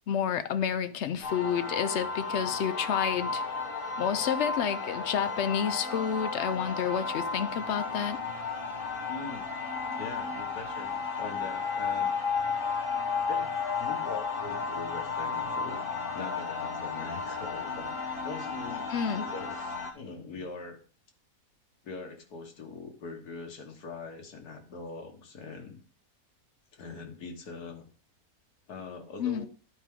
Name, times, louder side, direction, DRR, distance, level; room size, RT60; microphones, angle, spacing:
voice 1, 0.1-3.4 4.0-8.2 18.9-19.3 29.2-29.5, left 8 dB, 65° left, 0.7 m, -30 dB
sound 1, 1.2-19.9, left 5 dB, 40° left, 1.2 m, -33 dB
voice 2, 9.1-9.5 10.0-12.2 13.3-15.8 16.1-17.9 18.2-18.9 19.2-20.8 21.8-25.8 26.7-27.9 28.7-29.5, left 4 dB, 90° left, 1.8 m, -42 dB
11.0 x 4.7 x 3.6 m
omnidirectional pair, 1.6 m